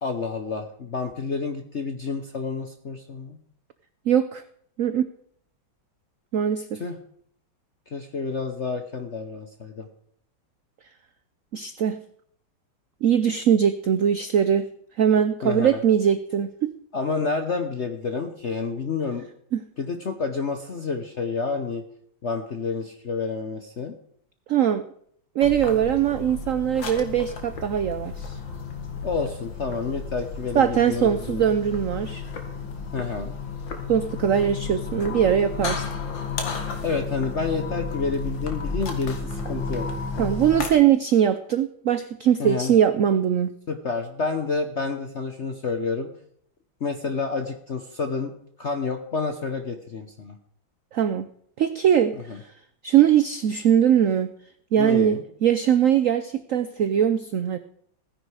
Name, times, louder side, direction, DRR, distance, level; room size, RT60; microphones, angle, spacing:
voice 1, 0.0-3.4 6.8-7.0 7.9-9.9 15.4-15.8 16.9-19.3 19.8-21.8 22.2-24.0 29.0-31.4 32.9-33.3 36.8-39.9 42.4-42.7 43.7-46.1 46.8-48.3 48.6-50.4 52.3-52.4 54.8-55.2, left 4 dB, 45° left, 6 dB, 1.0 m, -29 dB
voice 2, 4.1-4.4 4.8-5.1 6.3-6.8 11.5-12.0 13.0-14.7 15.0-16.7 19.5-19.6 24.5-24.8 25.4-28.4 30.5-32.2 33.9-35.8 40.2-43.5 50.9-51.3 51.6-52.4 52.8-54.3 54.7-57.6, right 9 dB, 85° right, 12 dB, 0.7 m, -21 dB
sound 1, 25.4-40.7, left 4 dB, 65° left, 2.5 m, -33 dB
15.5 x 10.0 x 4.9 m, 0.66 s
omnidirectional pair, 2.2 m